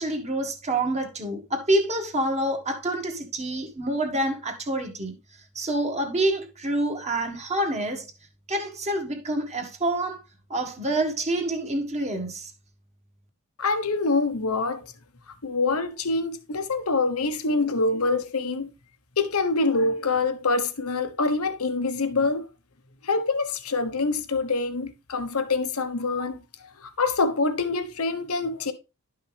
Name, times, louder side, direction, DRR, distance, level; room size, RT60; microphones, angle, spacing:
voice 1, 0.0-5.2 5.5-8.1 8.5-10.2 10.5-12.5, right 1 dB, 30° right, 1.6 m, -27 dB
voice 2, 13.6-14.9 15.4-18.7 19.2-22.5 23.0-28.7, left 3 dB, 90° left, 1.0 m, -25 dB
11.0 x 5.6 x 3.4 m
head